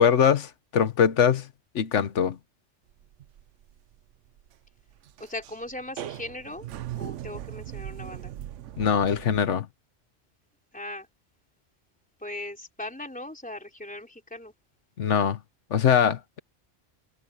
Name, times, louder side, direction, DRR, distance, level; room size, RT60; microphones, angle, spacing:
voice 1, 0.0-1.5 1.7-2.4 8.8-9.7 15.0-15.4 15.7-16.4, left 8 dB, 75° left, 1.3 m, -22 dB
sound 1, 2.9-9.4, right 12 dB, 80° right, 1.0 m, -39 dB
voice 2, 5.2-6.7 7.0-8.3 10.7-11.1 12.2-14.5, left 1 dB, 5° left, 3.6 m, -38 dB
omnidirectional pair, 1.2 m